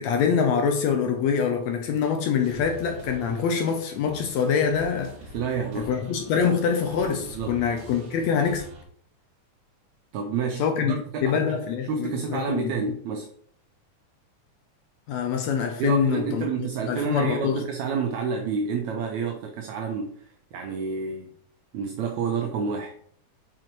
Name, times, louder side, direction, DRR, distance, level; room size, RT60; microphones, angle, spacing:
voice 1, 0.0-5.1 5.8-8.7 10.6-12.7 15.1-17.6, left 6 dB, 75° left, 1.6 m, -25 dB
sound 1, 2.4-8.8, right 2 dB, 60° right, 2.5 m, -45 dB
voice 2, 5.3-5.9 7.3-7.6 10.1-13.3 15.8-21.3 21.7-22.9, right 5 dB, 75° right, 1.8 m, -29 dB
6.0 x 4.4 x 4.5 m
omnidirectional pair, 3.7 m